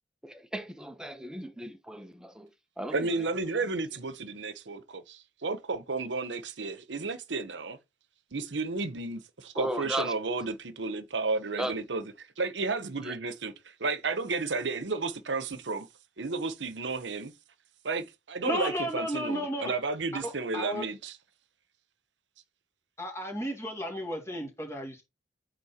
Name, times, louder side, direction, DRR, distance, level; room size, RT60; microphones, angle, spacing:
voice 1, 0.2-2.5 2.8-4.0 9.5-10.1 11.6-11.7 13.0-13.2, right 1 dB, 5° right, 1.0 m, -36 dB
voice 2, 2.9-7.8 8.3-12.0 12.4-15.9 16.2-17.3 17.8-21.1, right 3 dB, 90° right, 1.0 m, -32 dB
voice 3, 18.4-19.8 20.2-20.9 23.0-25.0, equal, 15° left, 2.3 m, -33 dB
8.6 x 3.7 x 4.3 m
head